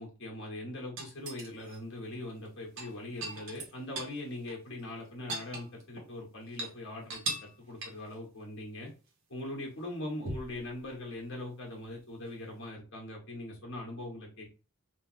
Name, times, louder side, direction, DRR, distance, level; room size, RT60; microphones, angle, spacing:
voice 1, 0.0-8.9 9.3-14.5, left 1 dB, 60° left, -1 dB, 1.3 m, -41 dB
sound 1, 1.0-1.8 2.6-4.2 4.5-4.6 4.9-6.1 6.5-6.7 7.1-7.6 7.8-8.1 10.2-10.6 12.3-12.4, right 2 dB, 60° right, 0.8 m, -39 dB
3.3 x 2.0 x 3.2 m, 0.33 s
head